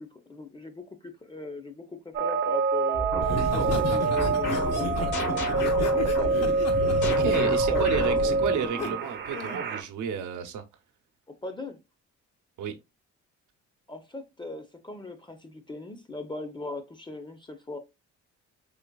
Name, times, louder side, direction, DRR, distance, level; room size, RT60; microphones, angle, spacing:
voice 1, 0.0-3.1 3.5-5.2 7.1-8.4 11.4-11.8 13.9-17.8, left 2 dB, 15° left, 0.6 m, -39 dB
sound 1, 2.1-9.8, right 4 dB, 35° right, 0.6 m, -26 dB
sound 2, 2.9-9.1, left 1 dB, 75° left, 1.7 m, -32 dB
Laughter, 3.2-8.9 9.3-9.6, left 4 dB, 60° left, 0.9 m, -34 dB
voice 2, 7.0-10.6 12.6-12.7, right 7 dB, 75° right, 0.8 m, -32 dB
3.9 x 3.2 x 2.2 m
cardioid pair, 90°, 30 cm